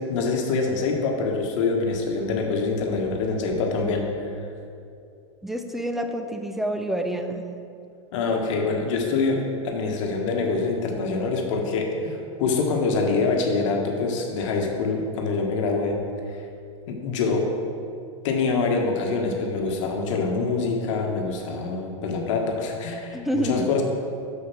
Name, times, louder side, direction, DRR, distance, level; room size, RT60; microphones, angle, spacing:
voice 1, 0.1-4.3 8.1-16.0 16.9-17.5 18.2-23.8, left 4 dB, 65° left, 2 dB, 1.3 m, -25 dB
voice 2, 5.4-7.4 23.1-23.7, right 1 dB, ahead, 5 dB, 0.6 m, -28 dB
6.7 x 5.0 x 6.1 m, 2.5 s
hypercardioid pair, 105°, 17 cm